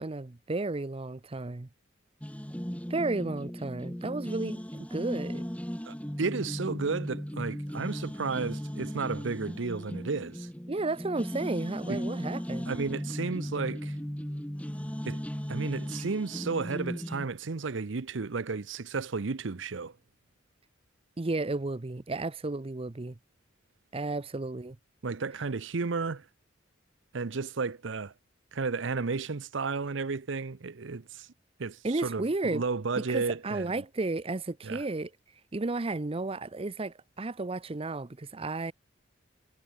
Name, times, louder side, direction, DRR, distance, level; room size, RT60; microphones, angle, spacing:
voice 1, 0.0-1.7 2.9-5.4 10.7-12.7 21.2-23.2 23.9-24.8 31.8-32.6 33.1-35.1 35.5-38.7, right 2 dB, 30° right, 0.6 m, -33 dB
sound 1, 2.2-17.3, equal, 5° left, 1.5 m, -37 dB
voice 2, 5.8-10.5 11.9-12.0 12.7-14.0 15.0-15.2 15.5-19.9 25.0-26.3 27.1-28.1 28.5-31.3 31.6-33.7 34.6-34.8, right 4 dB, 65° right, 0.7 m, -33 dB
head